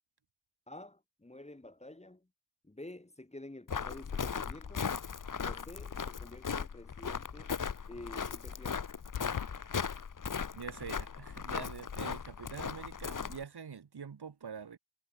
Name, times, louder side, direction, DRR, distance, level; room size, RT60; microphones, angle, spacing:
voice 1, 0.7-2.3 2.6-4.9 5.4-7.5 7.9-8.9, left 1 dB, 15° left, 3.0 m, -49 dB
Walk footsteps, 3.7-13.4, left 6 dB, 45° left, 1.6 m, -38 dB
sound 1, 9.1-9.5, left 9 dB, 80° left, 2.3 m, -38 dB
voice 2, 10.5-14.8, right 6 dB, 55° right, 3.6 m, -45 dB
cardioid pair, 70°, 45 cm